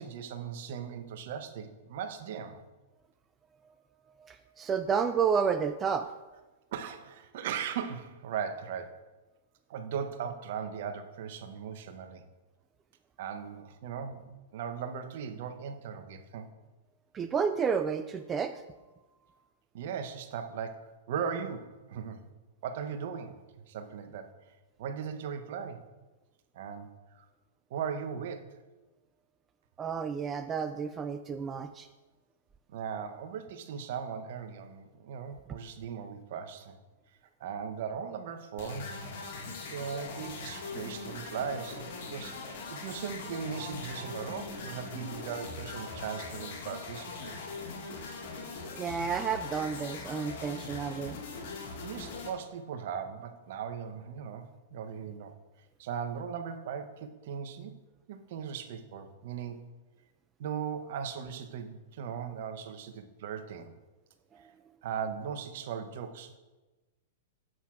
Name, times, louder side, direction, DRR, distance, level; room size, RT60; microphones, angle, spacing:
voice 1, 0.0-2.6 6.7-9.0 9.7-12.2 13.2-16.5 19.7-22.2 22.6-24.3 24.8-25.9 26.5-27.3 27.7-28.6 32.7-36.8 37.4-38.9 39.7-47.3 51.8-55.3 55.8-57.7 58.1-59.6 60.4-63.7 64.4-64.5 64.8-66.4, right 7 dB, 55° right, 8 dB, 0.7 m, -38 dB
voice 2, 4.2-6.1 17.1-18.6 29.8-31.9 48.8-51.2 64.3-64.4, right 6 dB, 20° right, 8 dB, 0.3 m, -31 dB
sound 1, 38.6-52.3, left 4 dB, 55° left, 1.6 m, -41 dB
11.0 x 7.5 x 2.4 m, 1.2 s
figure-of-eight pair, 105°, 0 cm